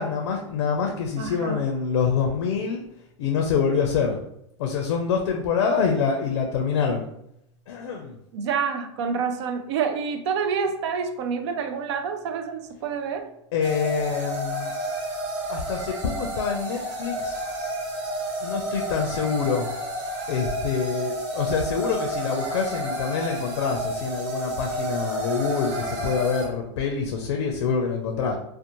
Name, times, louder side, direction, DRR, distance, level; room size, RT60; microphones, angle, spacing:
voice 1, 0.0-2.8 3.2-4.2 4.6-7.0 7.7-8.2 13.5-14.7 15.5-17.5 18.4-19.7 20.3-28.4, left 6 dB, 65° left, 3 dB, 0.5 m, -26 dB
voice 2, 1.2-1.6 8.3-13.3, right 6 dB, 65° right, 7 dB, 0.4 m, -28 dB
sound 1, 13.6-26.5, right 1 dB, 40° right, 0.8 m, -31 dB
2.6 x 2.0 x 2.9 m, 0.78 s
hypercardioid pair, 120°, 16 cm